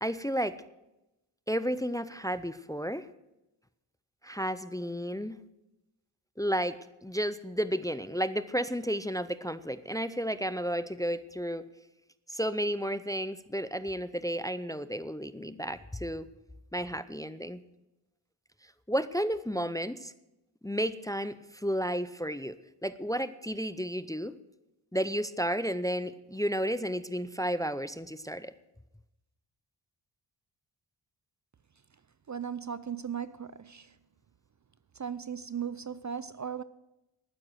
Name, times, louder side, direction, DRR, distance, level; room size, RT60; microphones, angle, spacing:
voice 1, 0.0-0.6 1.5-3.1 4.2-5.4 6.4-6.8 7.0-11.6 12.3-16.3 16.7-17.6 18.9-20.1 20.6-22.6 22.8-24.3 24.9-28.5, equal, 5° left, 0.5 m, -32 dB
voice 2, 32.3-33.9 35.0-36.6, right 7 dB, 35° right, 0.5 m, -37 dB
12.5 x 9.4 x 6.4 m
cardioid pair, 50°, 49 cm